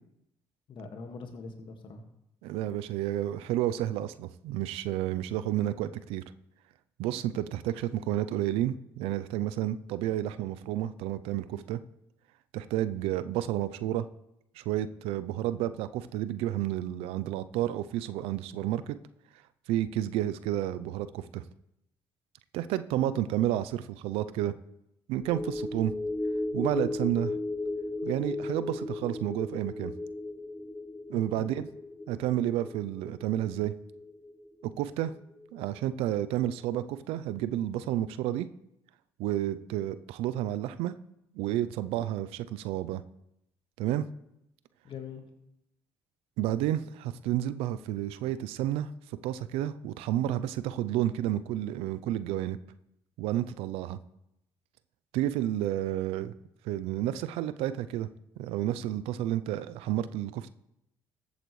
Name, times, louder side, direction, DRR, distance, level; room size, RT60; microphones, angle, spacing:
voice 1, 0.7-2.0 31.1-31.5 44.8-45.2, left 5 dB, 55° left, 5 dB, 1.8 m, -43 dB
voice 2, 2.4-6.2 7.0-11.8 12.5-14.0 14.6-19.0 19.7-21.4 22.5-24.5 25.1-25.9 26.5-27.3 28.0-29.9 31.1-31.6 32.1-33.7 34.8-35.1 35.5-38.5 39.2-40.9 41.3-43.0 43.8-44.0 46.4-48.9 49.2-52.6 53.2-54.0 55.1-56.3 56.6-58.1 58.4-60.5, right 13 dB, 80° right, 14 dB, 0.4 m, -31 dB
sound 1, 25.2-35.8 36.2-36.3, left 2 dB, 5° left, 0.7 m, -36 dB
14.5 x 8.0 x 3.2 m, 0.83 s
supercardioid pair, 65°, 10 cm